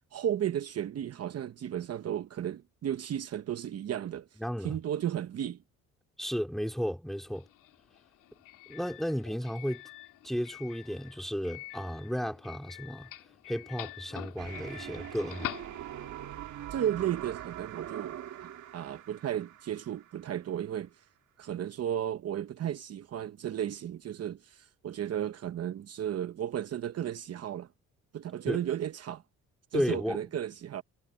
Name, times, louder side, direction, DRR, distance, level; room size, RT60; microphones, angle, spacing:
voice 1, 0.1-4.3 4.6-5.6 16.7-21.0 21.4-27.7 28.1-29.2 29.7-30.8, right 10 dB, 55° right, 0.9 m, -34 dB
voice 2, 4.4-4.8 6.2-7.5 8.7-9.8 10.2-13.1 13.5-15.5 28.5-28.6 29.7-30.2, equal, ahead, 4.1 m, -33 dB
Doorbell, 7.2-16.3, left 15 dB, 85° left, 2.7 m, -46 dB
sound 1, 14.4-20.3, right 11 dB, 70° right, 2.0 m, -43 dB
cardioid pair, 90°, 30 cm